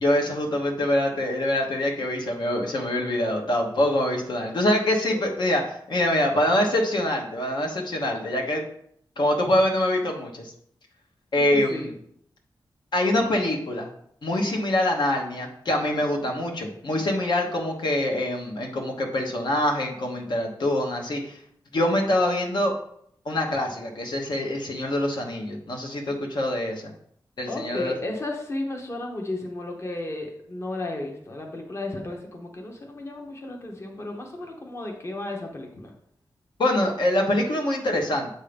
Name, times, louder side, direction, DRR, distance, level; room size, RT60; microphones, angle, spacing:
voice 1, 0.0-8.6 9.2-10.5 11.3-11.9 12.9-13.9 14.2-21.4 21.7-22.7 23.2-26.8 27.4-27.9 36.6-38.3, left 1 dB, 65° left, 1 dB, 1.0 m, -24 dB
voice 2, 11.4-11.9 27.5-35.9, left 2 dB, 35° left, 1 dB, 0.9 m, -34 dB
7.7 x 2.8 x 5.1 m, 0.68 s
wide cardioid pair, 155°, 8 cm